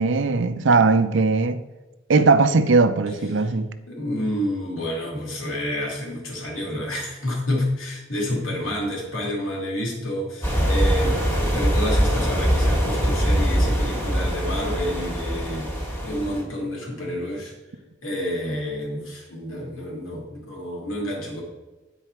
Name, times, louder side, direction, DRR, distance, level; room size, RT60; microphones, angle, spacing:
voice 1, 0.0-1.6 2.1-3.7, right 3 dB, 60° right, 0.5 m, -19 dB
voice 2, 3.9-17.5 18.0-21.4, left 1 dB, 85° left, 2.4 m, -29 dB
sound 1, 10.4-16.4, equal, 10° left, 1.5 m, -22 dB
9.2 x 4.5 x 4.5 m
head